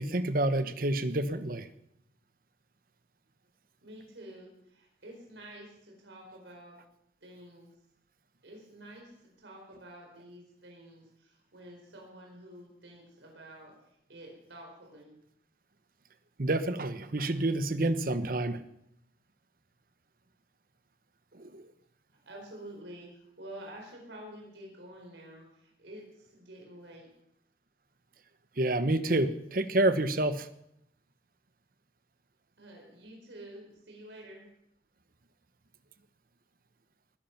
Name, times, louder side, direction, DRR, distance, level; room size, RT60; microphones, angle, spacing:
voice 1, 0.0-1.7 16.4-18.6 21.3-21.6 28.6-30.5, right 1 dB, 50° right, 12 dB, 1.0 m, -28 dB
voice 2, 3.8-6.8 7.2-7.7 8.4-15.1 22.1-27.1 32.6-34.5, right 1 dB, 75° right, 0 dB, 4.6 m, -49 dB
21.0 x 11.0 x 5.9 m, 0.77 s
head